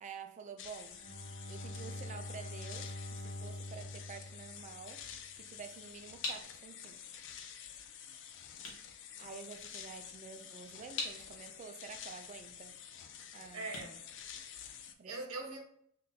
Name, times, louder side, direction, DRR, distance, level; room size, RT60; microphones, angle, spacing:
voice 1, 0.0-1.1 1.5-3.0 3.2-5.0 5.4-7.0 9.2-12.8 13.3-13.7 15.0-15.1, right 5 dB, 35° right, 0.3 m, -49 dB
sound 1, 0.6-14.9, left 8 dB, 60° left, 0.3 m, -50 dB
Bowed string instrument, 0.9-5.4, left 1 dB, 35° left, 0.9 m, -45 dB
sound 2, 6.2-15.0, left 3 dB, 90° left, 1.0 m, -47 dB
voice 2, 13.5-14.1 14.5-15.6, right 3 dB, 80° right, 0.8 m, -43 dB
3.7 x 2.4 x 2.7 m
head